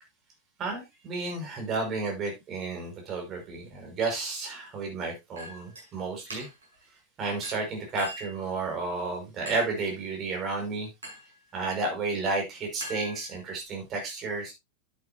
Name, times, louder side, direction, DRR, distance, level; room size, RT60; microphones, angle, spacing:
voice 1, 0.6-6.5 7.2-10.9 11.5-14.5, right 3 dB, 30° right, 2 dB, 5.2 m, -32 dB
Chink clink, 5.4-5.9 6.3-6.7 7.4-8.4 9.5-9.8 11.0-11.4 12.8-13.6, equal, 70° right, 6.4 m, -42 dB
10.5 x 9.0 x 2.7 m, 0.21 s
figure-of-eight pair, 90°, 0 cm